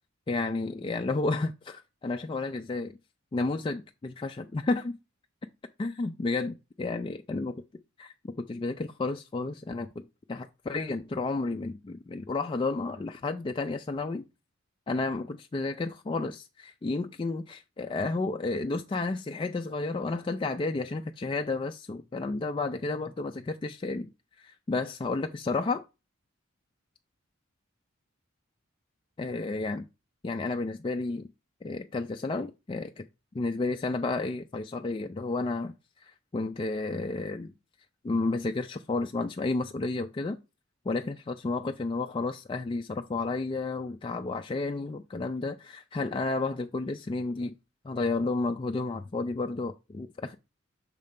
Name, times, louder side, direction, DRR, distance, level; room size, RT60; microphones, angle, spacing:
voice 1, 0.3-2.9 3.3-5.0 5.8-7.5 8.0-14.2 14.9-24.1 24.4-25.8 29.2-29.9 30.2-31.3 31.6-33.1 33.3-35.7 36.0-37.5 38.0-40.4 40.9-47.5 47.8-50.4, left 3 dB, 25° left, 0.3 m, -31 dB
6.6 x 3.1 x 5.2 m
head